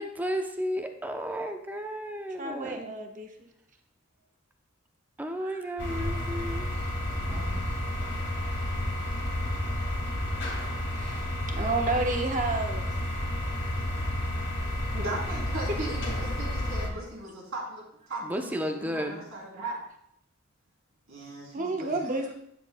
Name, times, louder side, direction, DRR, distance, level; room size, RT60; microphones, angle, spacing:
voice 1, 0.0-2.9 5.2-6.8 18.2-19.2, equal, 10° right, 4 dB, 0.6 m, -33 dB
voice 2, 2.4-3.3 5.4-5.6 7.3-7.6 10.9-12.9 21.5-22.3, right 2 dB, 35° right, 3 dB, 1.0 m, -31 dB
sound 1, 5.8-16.9, left 1 dB, 55° left, 1.9 m, -31 dB
voice 3, 14.9-19.8 21.1-22.0, right 2 dB, 75° right, -3 dB, 3.1 m, -38 dB
11.0 x 7.3 x 2.2 m, 0.73 s
head